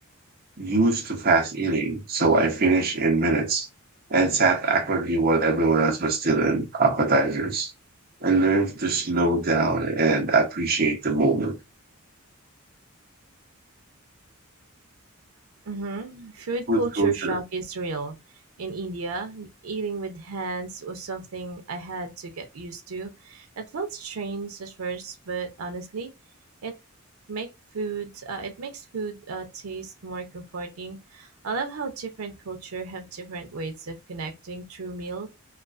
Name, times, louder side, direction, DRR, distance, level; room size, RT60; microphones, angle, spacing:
voice 1, 0.6-3.7 4.1-7.7 8.2-11.5 16.7-17.4, right 3 dB, 45° right, 0.7 m, -22 dB
voice 2, 15.6-18.2 18.6-26.1 26.6-26.7 27.3-35.3, right 4 dB, 85° right, 0.5 m, -34 dB
2.3 x 2.3 x 2.3 m
head